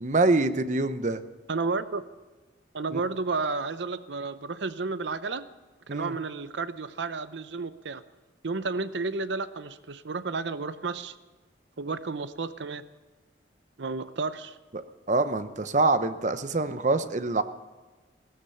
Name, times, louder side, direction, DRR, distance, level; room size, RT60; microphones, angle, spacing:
voice 1, 0.0-1.2 2.9-3.0 5.9-6.1 15.1-17.4, right 3 dB, 40° right, 11 dB, 0.8 m, -25 dB
voice 2, 1.5-2.0 2.7-5.5 5.9-8.0 8.4-11.1 11.8-12.8 13.8-14.6, right 4 dB, 75° right, 13 dB, 0.7 m, -32 dB
17.0 x 13.5 x 5.7 m, 1.3 s
head